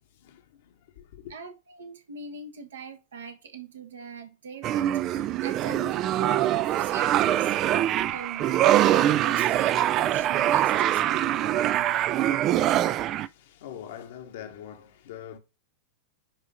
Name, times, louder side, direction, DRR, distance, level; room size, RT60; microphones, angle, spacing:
voice 1, 0.0-1.3 12.9-15.4, left 10 dB, 55° left, 1.2 m, -44 dB
voice 2, 1.3-12.0, right 5 dB, 65° right, 1.3 m, -41 dB
sound 1, 4.6-13.3, right 12 dB, 35° right, 0.4 m, -23 dB
9.9 x 3.6 x 4.1 m
figure-of-eight pair, 90°, 0 cm